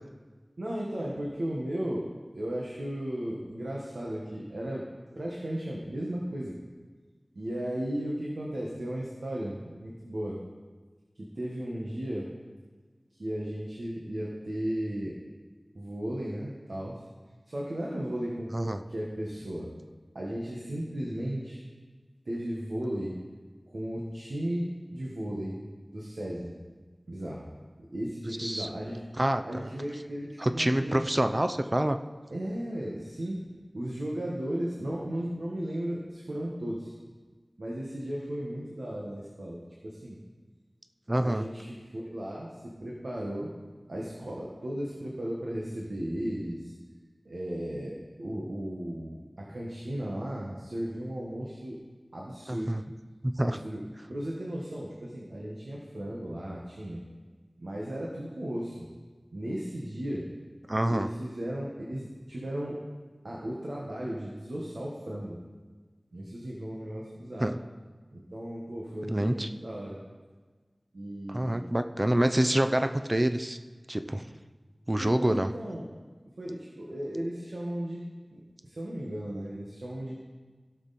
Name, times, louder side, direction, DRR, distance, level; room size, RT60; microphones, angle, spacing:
voice 1, 0.6-2.1 2.3-4.9 5.1-6.6 7.3-10.4 11.1-12.3 13.1-15.2 15.7-17.0 17.5-19.7 20.1-21.6 22.2-23.1 23.7-25.6 25.9-26.6 27.1-27.5 27.9-29.0 29.4-31.0 32.3-33.4 33.7-36.9 37.6-40.2 41.2-43.5 43.9-46.7 47.2-51.8 52.1-52.8 53.4-53.8 54.1-57.0 57.6-58.9 59.3-60.3 60.9-62.8 63.2-65.5 66.1-67.5 68.1-70.0 70.9-71.6 75.0-75.9 76.4-80.2, right 1 dB, 90° right, -3 dB, 1.4 m, -35 dB
voice 2, 29.2-29.6 30.4-32.0 41.1-41.4 52.5-52.8 53.2-53.6 60.7-61.1 67.4-67.6 69.1-69.5 71.3-73.6 73.9-74.3 74.9-75.5, right 1 dB, 30° right, 8 dB, 0.6 m, -27 dB
16.5 x 6.3 x 4.2 m, 1.4 s
wide cardioid pair, 55°, 0 cm